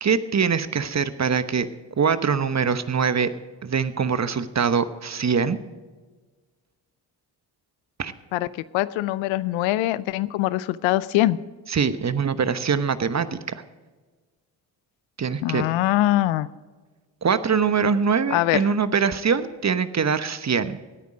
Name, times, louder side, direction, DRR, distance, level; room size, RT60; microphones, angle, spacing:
voice 1, 0.0-1.7 2.0-3.3 3.6-5.6 8.0-8.1 11.7-13.4 15.2-15.6 17.2-20.8, right 6 dB, 35° right, 13 dB, 1.1 m, -23 dB
voice 2, 8.3-11.4 15.4-16.5 18.3-18.6, left 16 dB, 80° left, 18 dB, 0.6 m, -23 dB
18.0 x 9.3 x 5.1 m, 1.4 s
hypercardioid pair, 45°, 46 cm